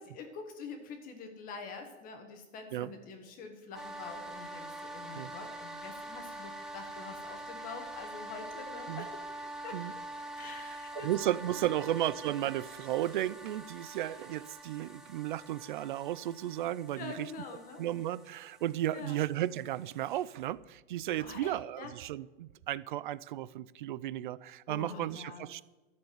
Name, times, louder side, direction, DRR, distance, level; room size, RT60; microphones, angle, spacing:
voice 1, 0.0-9.2 9.6-9.8 10.4-11.3 11.7-11.8 16.9-17.8 18.9-19.2 21.2-21.9 24.7-25.6, left 5 dB, 25° left, 1.5 m, -45 dB
sound 1, 3.7-20.5, right 1 dB, ahead, 1.0 m, -45 dB
voice 2, 10.4-17.3 17.8-25.6, right 13 dB, 45° right, 0.4 m, -34 dB
12.5 x 7.2 x 9.3 m
hypercardioid pair, 155°, 37 cm